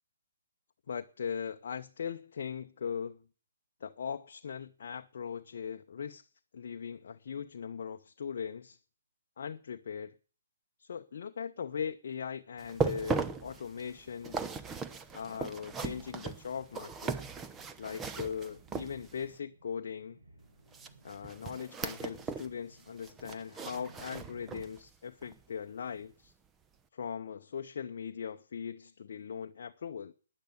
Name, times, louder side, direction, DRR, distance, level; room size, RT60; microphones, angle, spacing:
voice 1, 0.9-3.2 3.8-6.3 6.5-8.8 9.4-10.1 10.8-14.4 15.1-17.2 17.8-20.2 21.0-26.3 26.9-30.1, left 7 dB, 55° left, 0.7 m, -40 dB
sound 1, 12.6-19.3 20.7-22.5 22.8-24.8 25.2-25.4 25.9-26.0, right 4 dB, 15° right, 0.8 m, -38 dB
sound 2, 16.1-24.6, right 2 dB, 70° right, 7.9 m, -61 dB
11.5 x 9.8 x 8.1 m
figure-of-eight pair, 135°, 0 cm